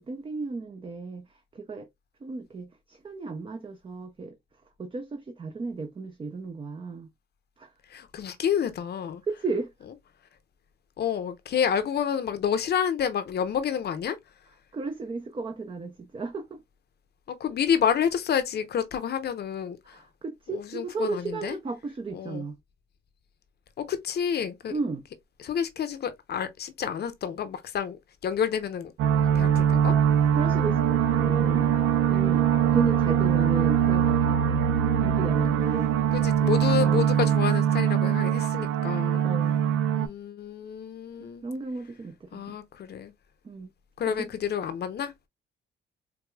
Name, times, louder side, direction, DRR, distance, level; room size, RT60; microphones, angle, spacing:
voice 1, 0.0-1.9 2.2-4.4 4.8-7.1 7.6-7.7 9.3-9.7 14.7-16.5 19.8-22.6 24.7-25.1 30.3-31.7 32.1-32.5 32.7-34.7 35.0-35.9 36.8-37.0 39.2-39.6 41.2-42.6 43.4-43.7 44.1-44.3, right 4 dB, 25° right, 0.5 m, -34 dB
voice 2, 7.9-9.2 11.0-14.2 17.3-20.0 20.5-21.6 22.1-22.5 23.8-24.7 25.4-28.9 29.3-29.9 36.1-39.2 39.9-41.4 42.3-43.1 44.0-45.1, left 8 dB, 55° left, 0.7 m, -29 dB
sound 1, 29.0-40.1, right 9 dB, 85° right, 0.6 m, -22 dB
4.7 x 2.3 x 2.2 m
cardioid pair, 90°, 20 cm